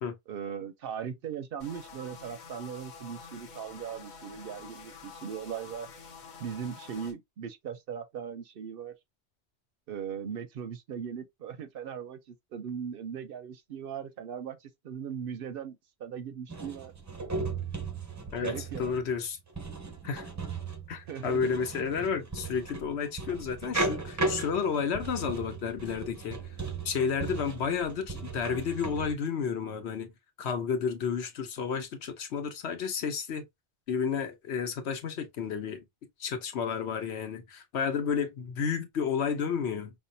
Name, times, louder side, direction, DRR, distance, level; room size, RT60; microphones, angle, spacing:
voice 1, 0.3-5.9 6.4-8.9 9.9-16.9 18.4-18.9 21.1-21.5, right 8 dB, 65° right, 0.7 m, -39 dB
sound 1, 1.6-7.1, left 5 dB, 45° left, 0.8 m, -48 dB
sound 2, 16.5-29.1, right 3 dB, 25° right, 0.4 m, -36 dB
voice 2, 18.3-19.4 20.0-20.3 20.9-26.4 26.8-30.1 30.4-33.4 33.9-35.8 36.2-39.9, left 6 dB, 75° left, 1.1 m, -31 dB
5.4 x 2.1 x 2.6 m
omnidirectional pair, 1.2 m